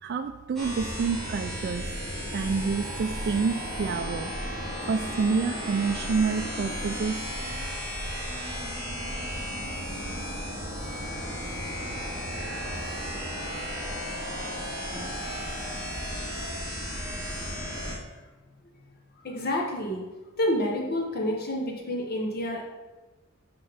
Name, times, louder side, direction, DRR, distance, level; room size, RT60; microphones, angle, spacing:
voice 1, 0.0-1.9 2.3-4.3 4.9-7.2, right 5 dB, 50° right, 6 dB, 0.3 m, -28 dB
sound 1, 0.6-18.0, equal, ahead, 2.1 m, -34 dB
voice 2, 14.9-15.4 17.0-17.1 19.2-20.0 20.4-22.6, left 1 dB, 45° left, 0 dB, 1.0 m, -29 dB
5.9 x 5.1 x 5.0 m, 1.2 s
head